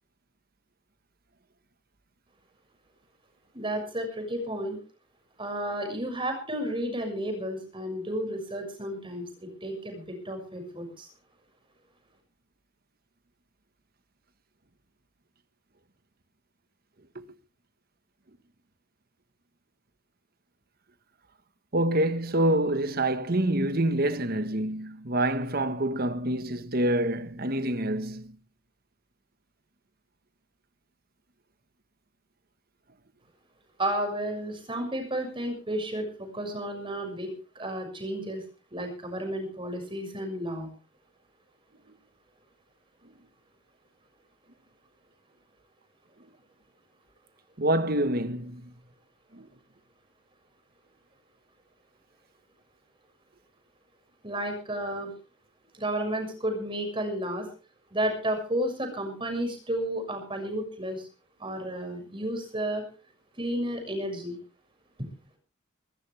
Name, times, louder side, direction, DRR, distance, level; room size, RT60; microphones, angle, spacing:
voice 1, 3.5-4.8 5.4-11.1 33.8-38.4 38.7-40.7 54.2-55.1 55.7-57.5 57.9-61.1 61.4-62.8 63.4-64.4 65.0-65.1, right 1 dB, 25° right, 6.4 m, -32 dB
voice 2, 21.7-28.3 47.6-48.7 49.3-49.5, right 1 dB, 50° right, 1.4 m, -26 dB
23.0 x 14.0 x 3.4 m
head